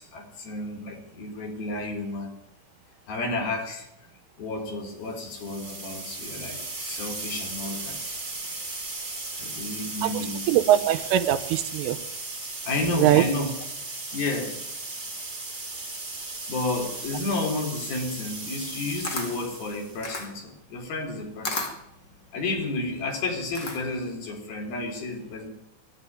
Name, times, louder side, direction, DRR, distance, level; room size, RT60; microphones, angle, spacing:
voice 1, 0.0-2.3 3.1-3.9 4.4-8.0 9.4-10.4 12.6-13.5 14.1-14.6 16.5-21.7 22.3-25.5, left 2 dB, 50° left, 3 dB, 5.5 m, -31 dB
sound 1, 5.1-20.1, right 2 dB, 55° right, 0.5 m, -36 dB
voice 2, 10.0-12.0 13.0-13.3, right 12 dB, 80° right, 10 dB, 3.6 m, -22 dB
Camera, 18.7-24.1, left 3 dB, 35° left, 2.1 m, -35 dB
22.5 x 12.0 x 9.6 m, 0.81 s
omnidirectional pair, 5.7 m